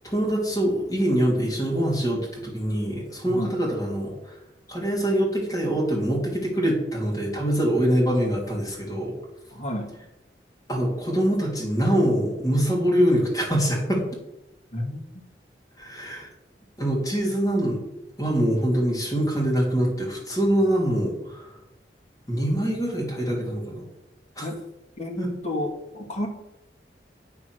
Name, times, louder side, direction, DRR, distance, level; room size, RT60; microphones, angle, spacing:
voice 1, 0.0-4.4 4.7-9.1 10.7-14.0 15.8-16.3 16.8-17.8 18.2-21.5 22.3-23.9 24.4-24.5 25.2-25.3, equal, 20° left, -3 dB, 3.0 m, -24 dB
voice 2, 3.2-3.5 9.5-9.9 14.7-15.0 24.4-24.6 25.0-26.3, left 1 dB, 40° left, -1 dB, 2.2 m, -31 dB
9.1 x 6.1 x 6.4 m, 0.90 s
head